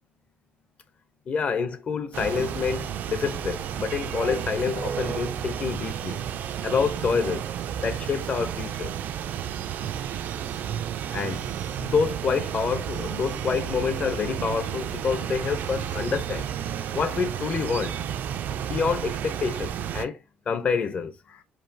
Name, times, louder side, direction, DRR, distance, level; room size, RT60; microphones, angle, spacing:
voice 1, 1.3-6.2 6.6-7.5 7.8-8.9 11.1-11.5 11.8-16.5 16.9-18.0 18.6-20.2 20.5-21.4, left 5 dB, 40° left, 0.7 m, -27 dB
sound 1, 2.1-20.1, right 9 dB, 60° right, 0.4 m, -32 dB
4.8 x 2.8 x 2.7 m
cardioid pair, 145°, 4 cm